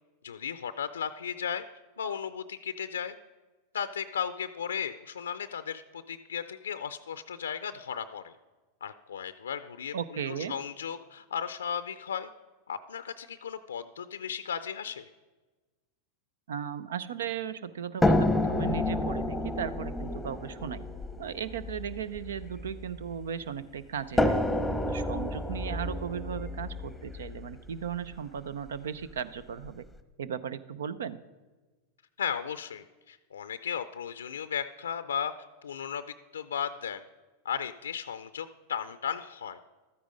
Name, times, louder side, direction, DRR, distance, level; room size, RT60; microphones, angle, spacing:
voice 1, 0.2-1.6 2.0-3.1 3.7-8.3 8.8-12.3 12.7-15.1 32.2-35.3 35.6-37.0 37.4-39.6, left 7 dB, 90° left, 11 dB, 0.4 m, -35 dB
voice 2, 9.9-10.5 16.5-20.9 21.2-24.5 24.9-29.9 30.2-31.2, right 8 dB, 80° right, 17 dB, 0.6 m, -36 dB
sound 1, 18.0-23.2 24.2-28.1 29.1-29.2 29.6-29.7, left 2 dB, 5° left, 1.0 m, -30 dB
13.0 x 9.5 x 5.2 m, 1.3 s
hypercardioid pair, 100°, 0 cm